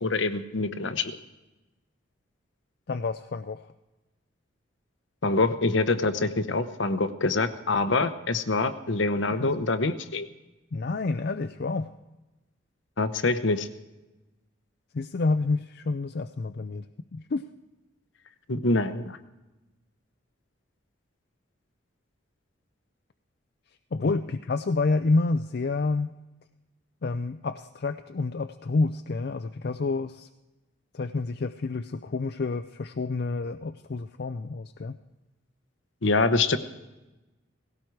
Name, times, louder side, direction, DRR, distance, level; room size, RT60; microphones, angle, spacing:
voice 1, 0.0-1.1 5.2-10.3 13.0-13.7 18.5-19.2 36.0-36.6, left 3 dB, 70° left, 11 dB, 0.9 m, -25 dB
voice 2, 2.9-3.7 9.4-9.5 10.7-11.9 14.9-16.9 17.1-17.5 23.9-26.1 27.0-30.3 30.9-35.0, left 3 dB, 50° left, 10 dB, 0.4 m, -28 dB
18.0 x 16.5 x 4.7 m, 1.0 s
head